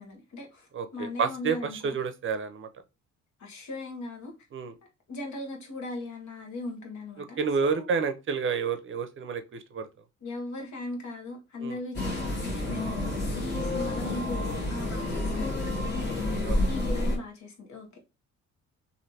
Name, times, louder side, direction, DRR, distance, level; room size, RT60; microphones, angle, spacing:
voice 1, 0.0-1.9 3.4-4.3 5.1-7.9 10.2-16.1 16.7-18.0, left 2 dB, 65° left, 1.2 m, -38 dB
voice 2, 0.7-2.7 4.5-4.7 7.4-9.9 11.6-11.8 16.4-16.6, right 5 dB, 45° right, 0.6 m, -29 dB
sound 1, 11.9-17.2, left 1 dB, 35° left, 1.4 m, -29 dB
3.1 x 2.7 x 2.7 m
cardioid pair, 90°, 30 cm